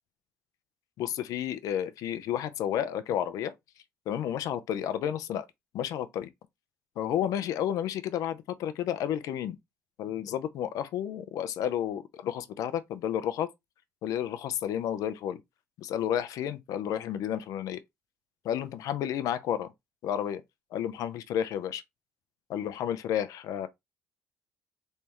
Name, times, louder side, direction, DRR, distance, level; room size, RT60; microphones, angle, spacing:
voice 1, 1.0-3.5 4.1-5.5 5.7-6.3 7.0-9.6 10.0-13.5 14.0-15.4 15.8-17.8 18.4-19.7 20.0-20.4 20.7-21.8 22.5-23.7, left 10 dB, 70° left, 0.5 m, -31 dB
3.4 x 3.2 x 2.9 m
supercardioid pair, 60°, 6 cm